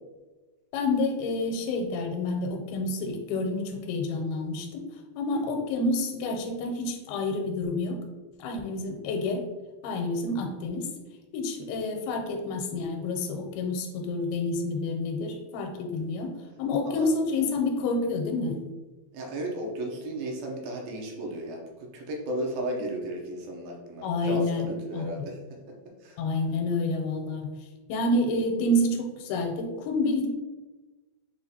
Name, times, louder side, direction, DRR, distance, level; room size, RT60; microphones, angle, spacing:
voice 1, 0.7-4.8 5.2-8.0 8.4-9.5 9.8-10.9 11.3-16.3 16.6-18.6 24.0-24.7 24.9-25.3 26.2-27.5 27.9-30.3, left 2 dB, 85° left, 3 dB, 2.5 m, -28 dB
voice 2, 19.1-25.4 26.0-26.2, right 1 dB, 80° right, 0 dB, 2.5 m, -35 dB
6.5 x 2.5 x 2.7 m, 1.2 s
omnidirectional pair, 4.3 m